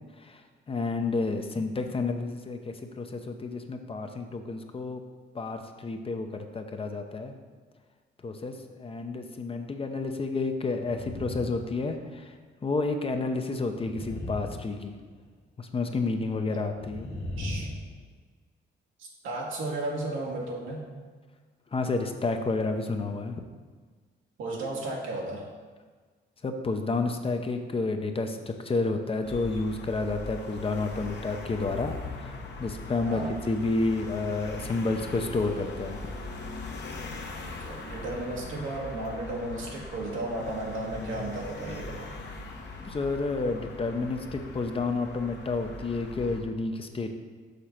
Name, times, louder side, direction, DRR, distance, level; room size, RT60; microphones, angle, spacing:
voice 1, 0.7-5.0 5.3-7.3 8.2-12.3 12.6-15.0 15.6-17.1 21.7-23.4 26.4-36.0 42.8-47.1, left 3 dB, 30° left, 6 dB, 0.6 m, -30 dB
sound 1, 10.8-11.7 12.0-12.2 13.7-15.3 16.7-18.0, left 1 dB, 90° left, 1.5 m, -37 dB
voice 2, 17.4-17.8 19.0-20.8 24.4-25.5 33.1-33.3 37.4-42.1, right 2 dB, 85° right, -2 dB, 1.5 m, -34 dB
sound 2, 29.2-46.4, left 3 dB, 60° left, 1.1 m, -41 dB
6.7 x 3.8 x 5.8 m, 1.5 s
cardioid pair, 90°, 20 cm